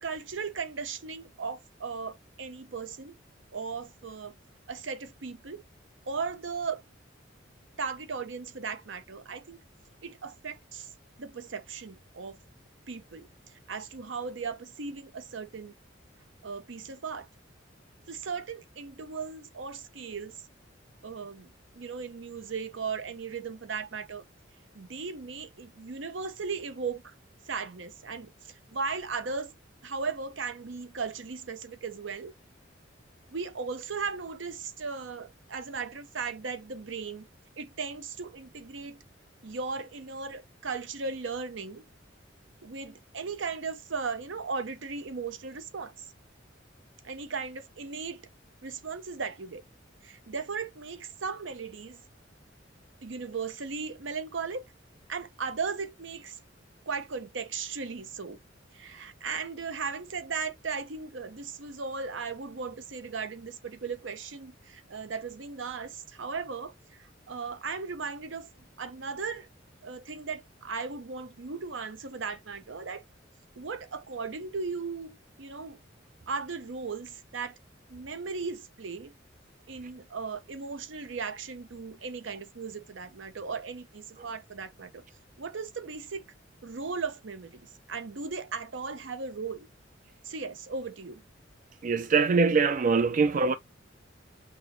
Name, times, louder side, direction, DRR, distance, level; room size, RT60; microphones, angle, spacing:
voice 1, 0.0-3.2 3.5-4.3 4.7-5.6 6.1-6.8 7.8-9.6 10.0-10.9 11.2-12.4 12.9-13.3 13.7-15.7 16.4-17.3 18.1-20.4 21.0-21.5 21.8-24.2 24.7-27.1 27.5-29.6 29.8-32.3 33.3-37.3 37.6-39.0 39.4-41.8 42.6-46.1 47.0-48.3 48.6-49.6 50.0-52.0 53.0-54.6 55.1-56.4 56.9-58.4 58.7-66.7 67.3-68.5 68.8-69.5 69.8-73.0 73.6-75.8 76.3-77.6 77.9-79.2 79.7-85.0 85.4-86.2 86.6-89.7 90.2-91.2, right 5 dB, 75° right, 0.7 m, -37 dB
voice 2, 91.8-93.5, right 4 dB, 40° right, 0.4 m, -23 dB
5.9 x 2.2 x 3.0 m
head